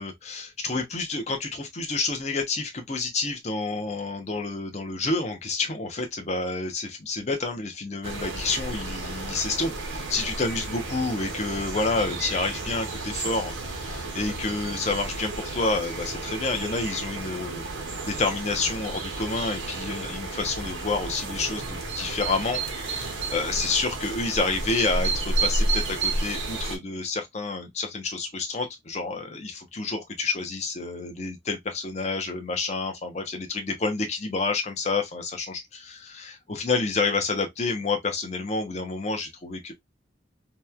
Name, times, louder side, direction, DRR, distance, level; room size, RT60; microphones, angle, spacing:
voice 1, 0.0-39.7, left 3 dB, 35° left, 0.6 m, -29 dB
sound 1, 8.0-26.8, right 2 dB, 90° right, 0.7 m, -32 dB
2.9 x 2.1 x 2.2 m
head